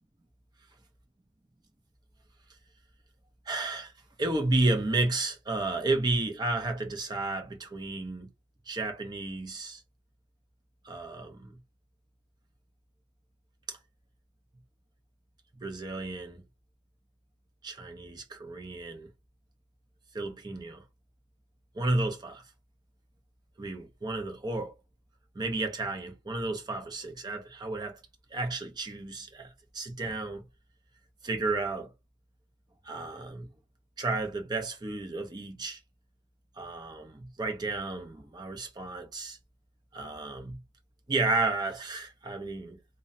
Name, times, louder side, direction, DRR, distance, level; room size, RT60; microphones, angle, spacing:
voice 1, 3.5-3.9 4.2-8.3 8.7-9.8 10.8-11.6 13.7-13.8 15.6-16.4 17.6-19.1 20.1-20.8 21.7-22.4 23.6-24.7 25.3-28.0 28.3-30.4 31.2-31.9 32.8-33.5 34.0-35.8 36.6-39.4 39.9-40.6 41.1-42.8, right 2 dB, 20° right, 0.5 m, -32 dB
2.6 x 2.0 x 2.5 m
head